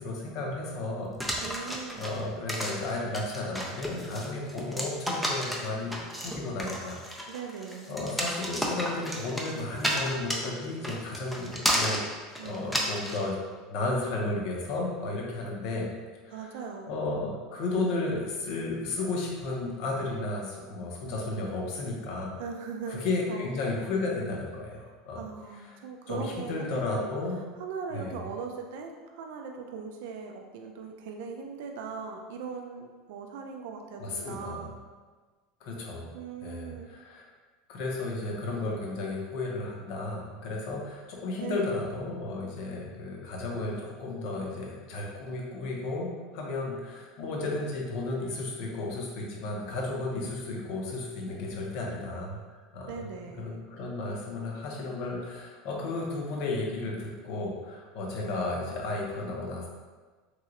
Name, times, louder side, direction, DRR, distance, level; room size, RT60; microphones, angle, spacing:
voice 1, 0.0-1.6 2.0-7.3 7.9-12.0 12.4-13.3 13.7-15.9 16.2-16.4 16.9-22.4 22.9-25.2 25.6-25.8 26.1-27.4 27.9-28.2 34.0-34.7 35.6-36.1 36.4-37.3 37.7-46.1 46.3-53.1 53.4-59.7, left 2 dB, 60° left, -1 dB, 0.7 m, -33 dB
sound 1, 1.2-13.2, equal, ahead, 0.4 m, -32 dB
voice 2, 1.4-2.0 7.3-8.0 12.4-13.0 16.3-16.9 22.4-23.0 23.3-23.4 25.2-27.1 27.6-34.7 36.1-36.9 41.4-41.8 52.9-53.6, right 5 dB, 75° right, 2 dB, 0.3 m, -39 dB
3.0 x 2.8 x 2.5 m, 1.4 s
supercardioid pair, 150°, 0 cm